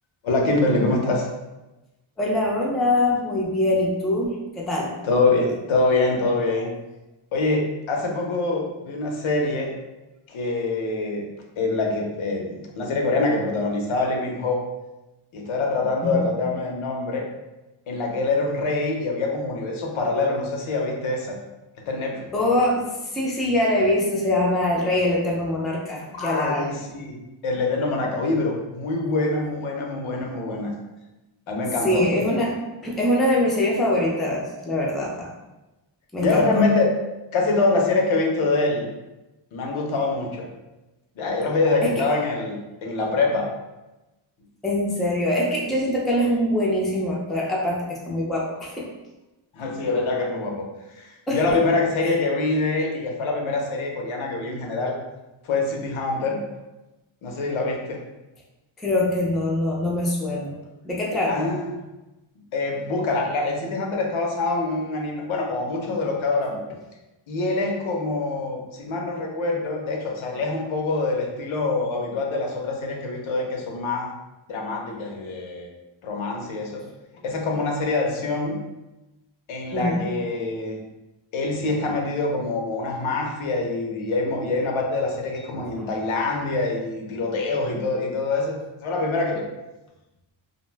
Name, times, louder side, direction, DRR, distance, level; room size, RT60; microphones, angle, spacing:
voice 1, 0.2-1.3 5.0-6.7 7.3-9.7 10.3-11.3 11.6-14.6 15.3-17.3 17.9-21.4 21.9-22.3 26.0-27.2 27.4-30.7 31.5-32.1 36.2-36.9 37.3-38.9 39.5-40.5 41.2-43.5 49.5-50.7 51.0-55.0 55.4-56.4 57.2-58.0 61.3-61.7 62.5-66.6 67.3-74.1 74.5-75.7 76.0-76.8 77.2-78.6 79.5-80.8 81.3-89.4, left 3 dB, 85° left, 1 dB, 0.7 m, -25 dB
voice 2, 2.2-4.9 16.1-16.2 22.3-26.6 31.8-35.3 36.1-36.6 41.8-41.9 44.6-48.9 51.3-51.6 58.8-61.5 79.7-80.0 85.8-85.9, left 1 dB, ahead, -3 dB, 0.3 m, -23 dB
2.5 x 2.1 x 3.2 m, 1.0 s
wide cardioid pair, 170°, 47 cm